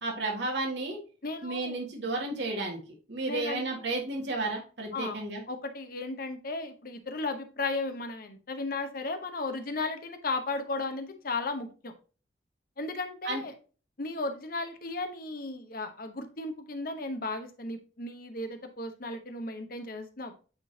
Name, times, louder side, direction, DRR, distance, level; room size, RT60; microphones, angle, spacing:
voice 1, 0.0-1.0 1.4-2.8 3.1-5.4 13.2-13.4, right 2 dB, 75° right, 0 dB, 1.8 m, -32 dB
voice 2, 1.2-1.8 3.3-3.7 4.9-5.2 5.5-11.9 12.8-13.5 14.0-20.3, left 3 dB, 55° left, 7 dB, 1.0 m, -35 dB
8.9 x 3.8 x 2.8 m, 0.36 s
head